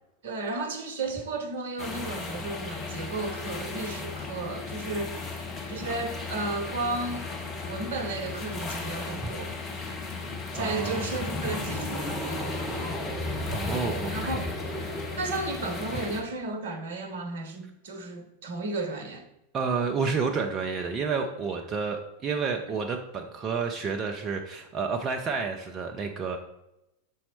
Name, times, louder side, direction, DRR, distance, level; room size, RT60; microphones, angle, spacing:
voice 1, 0.2-5.3 5.7-7.3 7.6-9.6 10.5-12.7 14.1-14.5 15.2-19.3, right 2 dB, 60° right, 0.9 m, -33 dB
sound 1, 1.8-16.2, left 4 dB, 25° left, 1.2 m, -35 dB
voice 2, 10.5-11.1 13.5-14.5 19.5-26.4, right 5 dB, 25° right, 0.5 m, -30 dB
sound 2, 11.0-16.2, equal, 5° right, 1.9 m, -36 dB
6.4 x 4.3 x 4.2 m
figure-of-eight pair, 90°, 0 cm